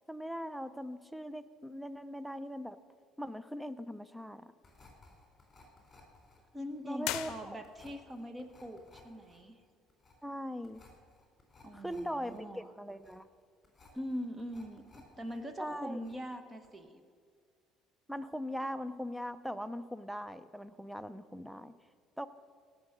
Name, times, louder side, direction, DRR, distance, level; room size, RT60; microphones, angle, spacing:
voice 1, 0.1-2.8 3.2-4.5 6.8-7.6 10.2-10.8 11.7-13.3 15.6-16.0 18.1-21.7 22.2-22.3, equal, ahead, 14 dB, 0.5 m, -40 dB
sound 1, 4.6-15.4 15.7-16.4 16.6-16.8, left 3 dB, 20° left, 3.7 m, -61 dB
voice 2, 6.5-9.6 11.6-12.7 13.9-17.0, equal, 20° right, 8 dB, 1.2 m, -42 dB
sound 2, 7.0-8.0, left 14 dB, 75° left, 0.6 m, -39 dB
17.0 x 6.3 x 6.7 m, 2.1 s
cardioid pair, 115°, 0 cm